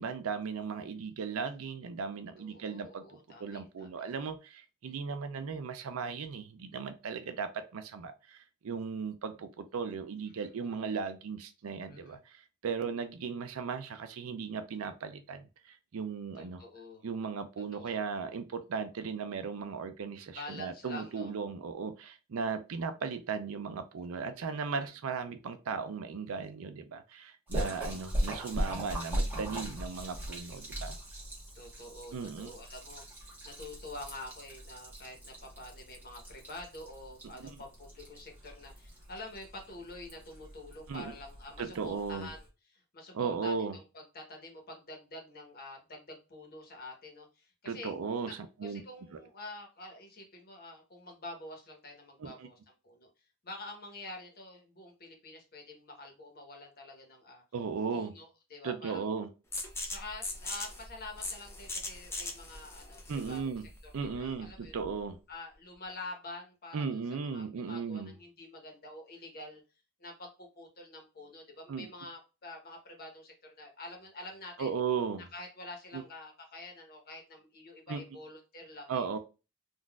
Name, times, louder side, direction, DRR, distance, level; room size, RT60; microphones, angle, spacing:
voice 1, 0.0-16.6 17.0-31.0 32.1-32.5 40.9-41.1 41.6-42.3 43.1-43.8 47.7-48.8 49.1-49.2 52.2-52.3 57.5-58.1 58.6-59.3 63.1-63.6 63.9-65.2 66.7-68.1 71.7-71.9 74.6-75.2 75.9-76.0 77.9-78.0 78.9-79.2, right 5 dB, 75° right, 0.4 m, -37 dB
voice 2, 2.4-4.0 10.3-10.9 11.9-12.2 16.3-17.1 17.7-18.0 20.3-21.3 24.1-24.9 31.5-42.4 42.7-48.0 48.3-48.4 48.6-52.6 52.8-53.1 53.4-57.4 57.9-59.1 59.8-63.5 64.0-64.8 65.3-69.6 70.0-74.8 75.3-79.0, left 2 dB, 45° left, 1.0 m, -47 dB
Splash splatter, 27.5-42.5, equal, 10° right, 1.2 m, -39 dB
sound 1, 59.5-65.0, left 2 dB, 10° left, 0.6 m, -41 dB
3.8 x 2.5 x 2.3 m
head